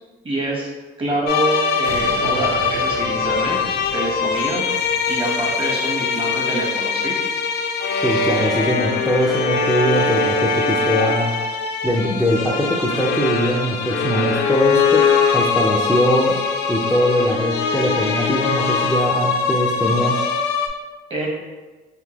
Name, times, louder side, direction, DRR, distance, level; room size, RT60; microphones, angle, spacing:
voice 1, 0.2-0.7 1.0-3.6 3.9-4.7 5.1-7.2 21.1-21.3, right 2 dB, 30° right, -2 dB, 1.0 m, -25 dB
sound 1, 1.3-20.7, left 5 dB, 75° left, 0.4 m, -22 dB
sound 2, 1.8-6.9 7.4-7.5, right 2 dB, 90° right, 1.1 m, -37 dB
voice 2, 8.0-11.4 11.8-15.1 15.3-16.4 16.7-20.2, equal, ahead, -5 dB, 0.4 m, -21 dB
3.7 x 2.7 x 2.9 m, 1.3 s
cardioid pair, 110°, 17 cm